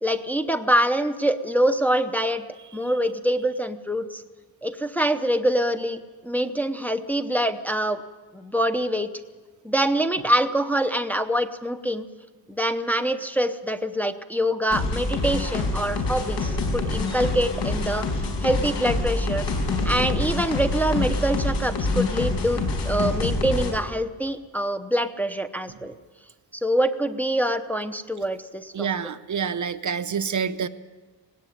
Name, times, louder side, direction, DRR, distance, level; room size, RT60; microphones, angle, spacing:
voice 1, 0.0-2.5 2.7-4.2 4.6-6.0 6.2-8.0 8.3-9.1 9.6-12.1 12.5-18.1 18.4-19.4 19.8-25.9 26.5-28.9, right 1 dB, 5° left, 7 dB, 0.7 m, -25 dB
sound 1, 14.7-23.7, left 2 dB, 75° left, 4.9 m, -26 dB
voice 2, 28.7-30.7, right 6 dB, 45° right, 11 dB, 0.7 m, -27 dB
19.5 x 17.0 x 9.3 m, 1.3 s
wide cardioid pair, 180°, 43 cm